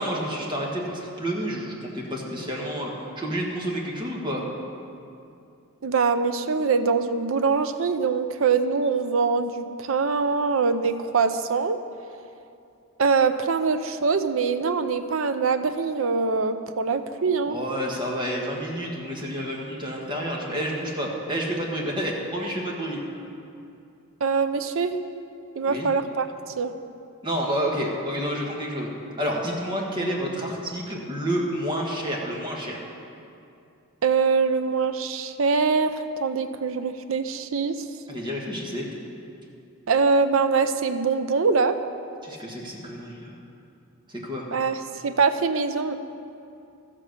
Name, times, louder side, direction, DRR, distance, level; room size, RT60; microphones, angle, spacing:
voice 1, 0.0-4.4 17.5-23.0 25.7-25.9 27.2-28.9 29.2-32.8 38.1-38.9 42.2-43.3 44.1-44.5, equal, 20° right, -2 dB, 1.5 m, -29 dB
voice 2, 5.8-11.8 13.0-17.6 24.2-24.9 25.6-26.3 26.6-26.7 34.0-35.9 36.2-37.8 39.9-41.8 44.5-46.0, right 5 dB, 65° right, 10 dB, 0.6 m, -23 dB
13.5 x 7.5 x 6.5 m, 2.6 s
head